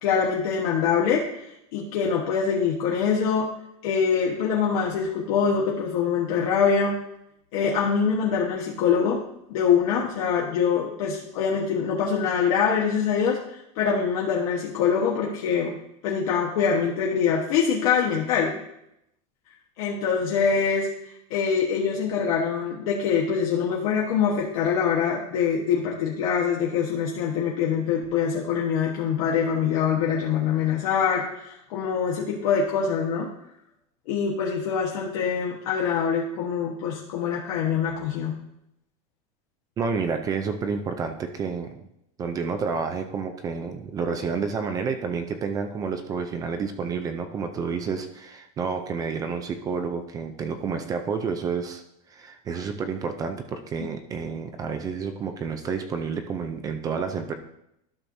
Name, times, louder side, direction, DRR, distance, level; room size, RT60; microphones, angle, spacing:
voice 1, 0.0-3.6 3.8-6.9 7.5-9.2 9.5-13.4 13.7-15.8 16.0-18.6 19.8-20.9 21.3-33.3 34.1-38.4 53.8-53.9, left 6 dB, 65° left, -2 dB, 1.2 m, -24 dB
voice 2, 39.8-41.7 42.2-51.8 52.1-57.3, right 5 dB, 20° right, 7 dB, 0.4 m, -30 dB
12.0 x 6.2 x 2.7 m, 0.80 s
supercardioid pair, 175°, 20 cm